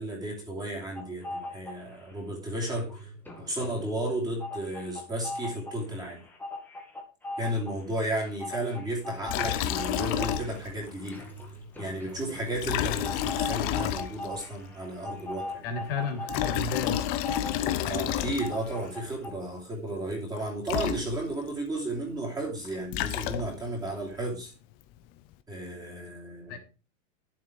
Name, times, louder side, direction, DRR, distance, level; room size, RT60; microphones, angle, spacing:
voice 1, 0.0-3.1 3.4-6.2 7.4-11.3 11.8-15.7 17.8-24.5 25.5-26.6, right 1 dB, 10° right, -1 dB, 2.9 m, -33 dB
sound 1, 1.0-2.2 2.5-19.3, left 2 dB, 5° left, 1.9 m, -40 dB
Liquid, 9.3-10.8 11.1-11.2 12.5-14.5 16.1-18.7 20.4-20.5 20.7-21.5 22.6-23.8, left 12 dB, 25° left, 0.6 m, -30 dB
voice 2, 15.6-17.1 26.5-26.6, left 4 dB, 50° left, 6 dB, 2.8 m, -32 dB
11.5 x 7.6 x 4.6 m, 0.33 s
supercardioid pair, 175°, 38 cm